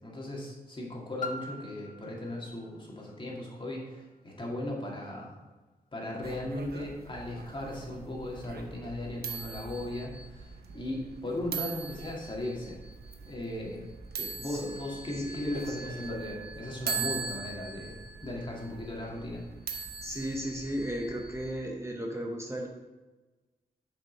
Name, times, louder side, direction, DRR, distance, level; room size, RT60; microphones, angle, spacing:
voice 1, 0.0-5.4 5.9-12.8 13.3-13.9 14.1-19.5, left 1 dB, 30° left, -2 dB, 2.3 m, -37 dB
Piano, 1.2-6.6 7.4-7.5, left 4 dB, 55° left, 0.8 m, -46 dB
sound 1, 6.2-21.5, right 5 dB, 75° right, 1.0 m, -41 dB
voice 2, 15.2-15.8 19.7-22.7, equal, 15° right, 0 dB, 1.0 m, -35 dB
7.4 x 5.4 x 5.3 m, 1.2 s
cardioid pair, 90°, 16 cm